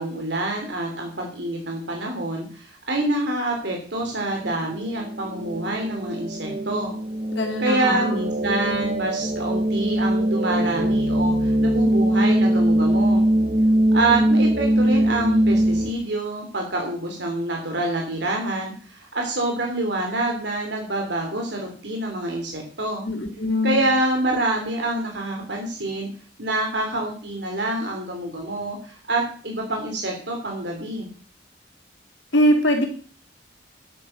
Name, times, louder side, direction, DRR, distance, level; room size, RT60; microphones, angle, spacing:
voice 1, 0.0-6.9 7.6-13.2 13.9-23.0 23.6-26.1 26.4-31.1, right 2 dB, 60° right, 1 dB, 3.4 m, -26 dB
sound 1, 4.0-15.9, right 1 dB, 35° right, 1.0 m, -22 dB
voice 2, 7.3-8.2 23.0-23.9 32.3-32.9, equal, 70° left, 3 dB, 3.7 m, -22 dB
11.5 x 9.5 x 6.7 m, 0.43 s
head